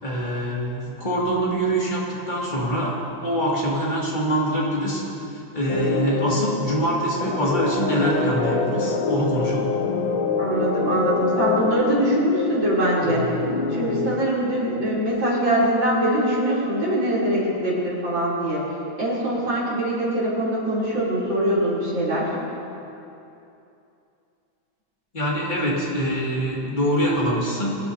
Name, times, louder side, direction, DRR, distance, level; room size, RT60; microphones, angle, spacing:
voice 1, 0.0-5.0 5.5-9.7 25.1-27.7, equal, 25° left, -6 dB, 2.4 m, -24 dB
sound 1, 5.7-14.2, left 4 dB, 75° left, 1.6 m, -25 dB
voice 2, 10.4-13.3 13.7-18.6 19.0-22.4, right 1 dB, 70° right, -8 dB, 4.1 m, -23 dB
22.5 x 10.5 x 2.8 m, 2.8 s
omnidirectional pair, 2.2 m